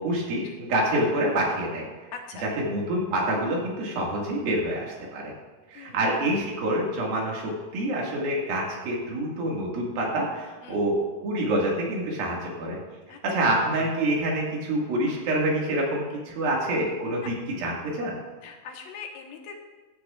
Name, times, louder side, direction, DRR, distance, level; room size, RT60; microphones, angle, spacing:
voice 1, 0.0-1.9 2.6-5.3 5.7-12.8 13.2-18.2, right 1 dB, 80° right, -2 dB, 3.8 m, -27 dB
voice 2, 2.1-2.5 5.7-6.2 10.6-10.8 13.1-13.5 18.4-19.6, left 6 dB, 85° left, 2 dB, 2.9 m, -42 dB
15.5 x 9.6 x 2.4 m, 1.3 s
omnidirectional pair, 4.1 m